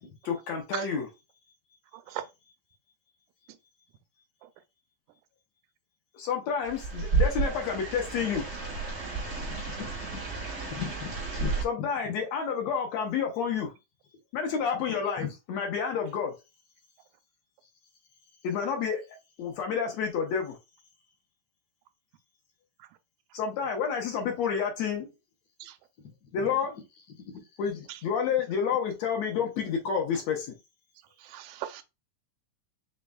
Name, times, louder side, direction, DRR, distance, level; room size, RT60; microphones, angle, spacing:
voice 1, 0.3-1.1 6.1-8.5 11.6-13.7 14.3-16.3 18.4-19.0 19.4-20.6 23.3-25.1 26.3-26.7 27.6-30.6, left 6 dB, 70° left, 1.9 m, -29 dB
sound 1, 6.6-11.6, right 4 dB, 60° right, 0.6 m, -31 dB
voice 2, 9.4-10.3 10.7-11.5 11.8-12.2 15.2-15.3 26.2-26.6 27.2-27.4, left 8 dB, 85° left, 0.8 m, -39 dB
voice 3, 31.2-31.8, right 13 dB, 85° right, 2.1 m, -37 dB
5.4 x 3.7 x 2.2 m
omnidirectional pair, 3.7 m